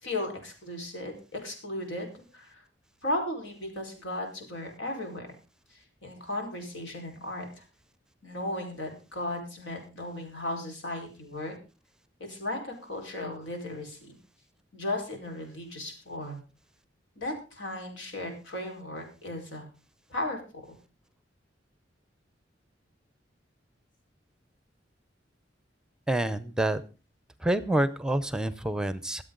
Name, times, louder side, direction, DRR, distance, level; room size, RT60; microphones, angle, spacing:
voice 1, 0.0-2.6 3.0-5.3 6.0-7.5 8.2-11.6 12.2-14.1 14.7-16.4 17.2-19.7 20.1-20.6, left 1 dB, 90° left, 3 dB, 4.7 m, -36 dB
voice 2, 26.1-26.8 27.4-29.2, right 1 dB, 5° right, 14 dB, 0.6 m, -27 dB
24.0 x 8.2 x 3.9 m, 0.32 s
head